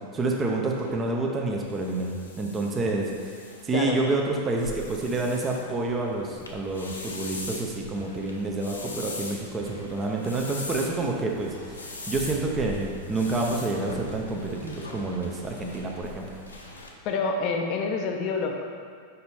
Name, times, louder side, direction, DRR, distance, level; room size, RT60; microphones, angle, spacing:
voice 1, 0.0-11.5 12.1-16.4, right 2 dB, 20° right, 0 dB, 0.6 m, -28 dB
sound 1, 0.7-16.9, left 2 dB, 75° left, 0.8 m, -41 dB
voice 2, 3.7-4.0 17.0-18.6, left 4 dB, 40° left, 2 dB, 0.5 m, -27 dB
5.4 x 5.2 x 4.2 m, 2.1 s
figure-of-eight pair, 90°, 0 cm